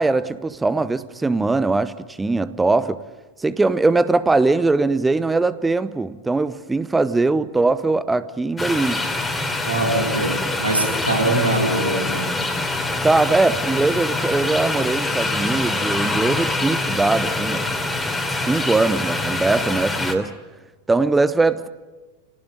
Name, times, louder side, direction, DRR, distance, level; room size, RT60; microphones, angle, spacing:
voice 1, 0.0-3.0 3.4-9.1 13.0-17.7 18.3-20.3 20.9-21.7, right 3 dB, 10° right, 0.9 m, -21 dB
sound 1, 8.6-20.2, left 2 dB, 10° left, 3.1 m, -24 dB
voice 2, 9.6-12.3, right 2 dB, 85° right, 4.8 m, -22 dB
28.5 x 18.5 x 9.0 m
figure-of-eight pair, 90°, 0 cm